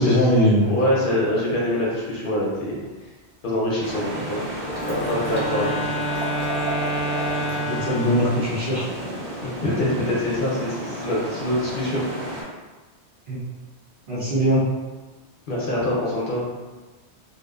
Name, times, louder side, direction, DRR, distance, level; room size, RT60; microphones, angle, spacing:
voice 1, 0.0-0.7 7.6-8.9 13.3-13.4 14.1-14.6, equal, 55° right, -7 dB, 0.8 m, -20 dB
voice 2, 0.5-2.8 3.4-4.4 4.8-5.7 9.4-12.0 15.5-16.4, left 1 dB, 55° left, -6 dB, 0.7 m, -24 dB
Liquid, 3.6-3.7 4.1-4.2 4.4-7.6 8.0-8.1, right 1 dB, 20° right, 0.6 m, -35 dB
sound 1, 3.8-12.4, right 1 dB, 75° right, 1.4 m, -33 dB
Wind instrument woodwind instrument, 4.6-8.7, right 1 dB, 5° left, 0.9 m, -28 dB
2.6 x 2.1 x 2.3 m, 1.2 s
omnidirectional pair, 1.1 m